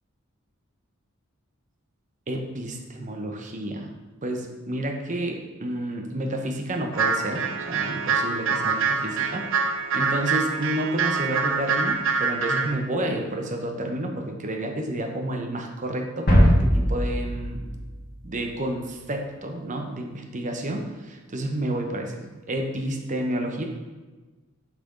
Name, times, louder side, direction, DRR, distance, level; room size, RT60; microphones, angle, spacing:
voice 1, 2.3-3.9 4.2-9.5 9.9-17.8 18.2-23.6, right 1 dB, 35° right, 3 dB, 0.8 m, -30 dB
sound 1, 6.9-12.7, right 5 dB, 65° right, 0.6 m, -25 dB
sound 2, 16.3-18.8, equal, 50° left, 2.1 m, -21 dB
6.7 x 5.9 x 3.9 m, 1.2 s
head